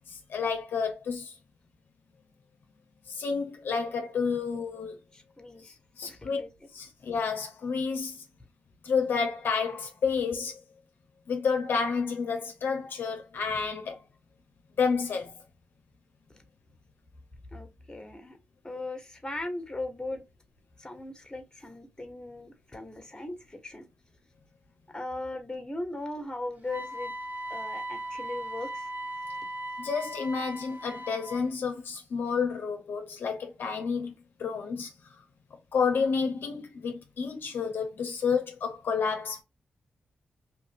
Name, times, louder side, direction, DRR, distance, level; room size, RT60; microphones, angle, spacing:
voice 1, 0.3-1.3 3.1-5.0 6.0-6.4 6.7-8.2 8.8-10.6 11.3-14.0 14.8-15.3 29.8-34.1 34.4-34.9 35.7-39.4, left 5 dB, 75° left, 0.7 m, -30 dB
voice 2, 5.1-5.7 6.0-6.5 16.3-16.4 17.5-18.4 18.6-20.2 20.8-23.9 24.9-27.1 27.5-28.9, left 2 dB, 20° left, 1.3 m, -38 dB
Wind instrument woodwind instrument, 26.7-31.5, right 1 dB, 55° right, 2.0 m, -38 dB
3.1 x 2.4 x 3.4 m
cardioid pair, 55°, 4 cm